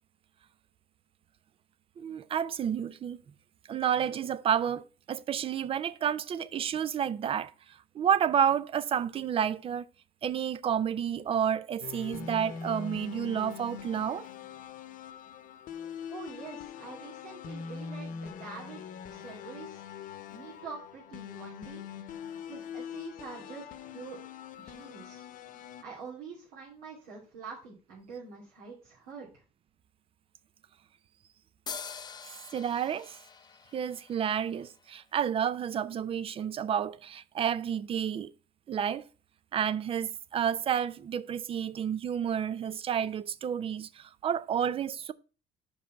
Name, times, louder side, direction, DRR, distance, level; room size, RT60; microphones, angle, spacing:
voice 1, 2.0-3.2 3.7-9.9 10.2-14.3 32.3-33.2 33.7-38.3 38.7-39.1 39.5-45.1, right 8 dB, 35° right, 0.5 m, -30 dB
sound 1, 11.8-25.8, left 7 dB, 55° left, 0.9 m, -43 dB
voice 2, 16.1-19.8 20.3-21.9 22.5-24.2 24.6-25.3 25.8-29.4, right 5 dB, 80° right, 2.6 m, -46 dB
sound 2, 31.7-35.2, left 6 dB, 25° left, 0.5 m, -45 dB
5.4 x 5.3 x 5.7 m
cardioid pair, 110°, 17 cm